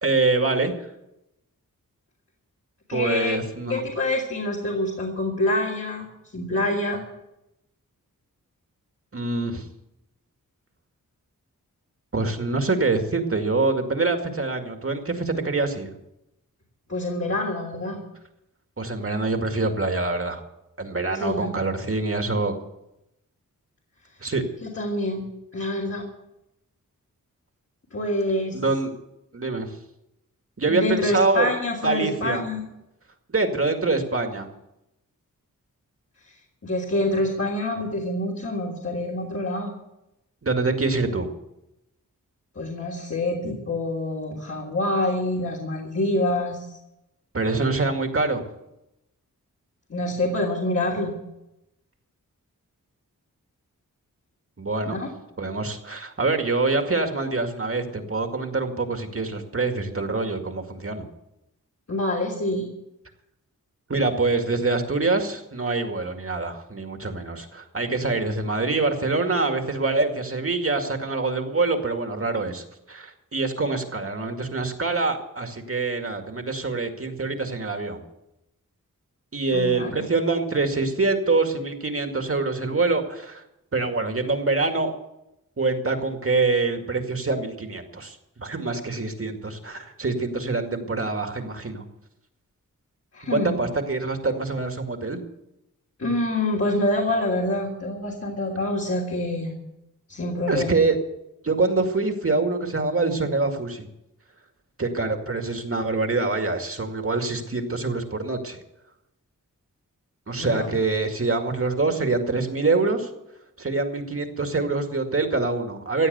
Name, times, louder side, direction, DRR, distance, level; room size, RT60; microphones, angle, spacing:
voice 1, 0.0-0.7 2.9-3.8 9.1-9.6 12.1-15.9 18.8-20.4 20.8-22.5 24.2-24.4 28.5-28.9 29.3-29.7 30.6-31.5 31.8-32.4 33.3-34.5 40.4-41.3 47.3-48.4 54.6-55.0 55.4-61.1 63.9-78.0 79.3-83.4 83.7-84.9 85.6-91.8 93.3-95.2 100.5-101.0 101.4-103.9 104.8-108.6 110.3-113.1 113.6-116.1, right 3 dB, 40° right, 5 dB, 2.2 m, -25 dB
voice 2, 2.9-3.3 3.7-6.1 6.3-7.0 16.9-18.0 21.1-21.5 24.6-25.2 25.5-26.0 27.9-28.6 30.7-32.6 36.3-36.4 36.6-39.7 42.5-46.8 49.9-51.1 54.8-55.1 61.9-62.6 79.5-80.0 93.1-93.5 96.0-99.5 100.1-100.8 110.4-110.7, left 1 dB, 45° left, -3 dB, 3.3 m, -26 dB
16.0 x 8.3 x 8.0 m, 0.88 s
cardioid pair, 65°, 33 cm